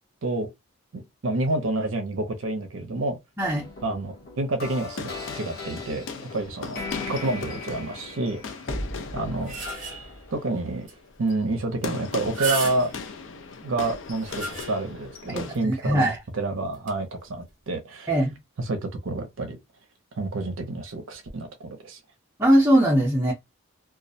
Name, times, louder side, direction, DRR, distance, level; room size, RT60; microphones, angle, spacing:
voice 1, 0.9-3.2 3.8-6.0 6.3-6.8 7.1-8.4 9.1-9.6 10.3-10.9 11.2-12.9 13.6-18.1 18.6-19.6 20.1-22.0, right 2 dB, 70° right, 0.5 m, -28 dB
sound 1, 3.4-10.3, left 2 dB, 45° left, 0.9 m, -38 dB
sound 2, 4.7-15.6, left 4 dB, 65° left, 0.4 m, -39 dB
sound 3, 9.1-10.3 10.9-11.0 11.3-11.4 12.1-13.2 13.9-15.1 15.5-15.6 16.7-16.9, right 4 dB, 35° right, 0.8 m, -34 dB
voice 2, 15.3-16.2 18.1-18.3 22.4-23.3, right 1 dB, 10° right, 0.6 m, -21 dB
2.3 x 2.0 x 2.6 m
head